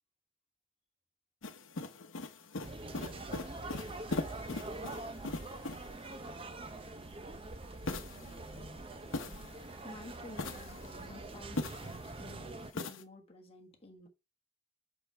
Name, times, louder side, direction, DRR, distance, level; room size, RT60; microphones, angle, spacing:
sound 1, 1.4-6.0 7.9-9.8 10.3-12.1 12.7-13.0, left 2 dB, 75° left, 0.9 m, -41 dB
sound 2, 2.6-12.7, right 2 dB, 25° right, 0.6 m, -45 dB
voice 1, 9.8-14.1, left 1 dB, 30° left, 1.4 m, -52 dB
5.9 x 5.6 x 4.6 m
head